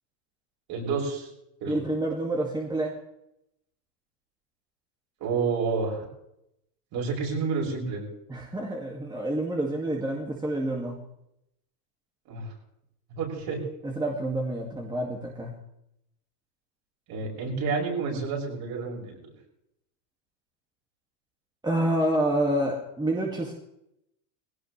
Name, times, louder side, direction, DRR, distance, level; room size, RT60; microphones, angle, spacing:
voice 1, 0.7-1.3 1.6-1.8 5.2-6.0 6.9-8.0 12.3-12.5 13.1-13.6 17.1-19.3, right 5 dB, 50° right, -3 dB, 7.3 m, -29 dB
voice 2, 1.7-2.9 8.3-11.0 13.8-15.5 21.6-23.5, right 1 dB, 10° right, -1 dB, 2.2 m, -28 dB
20.0 x 17.5 x 3.4 m, 0.80 s
supercardioid pair, 120°, 48 cm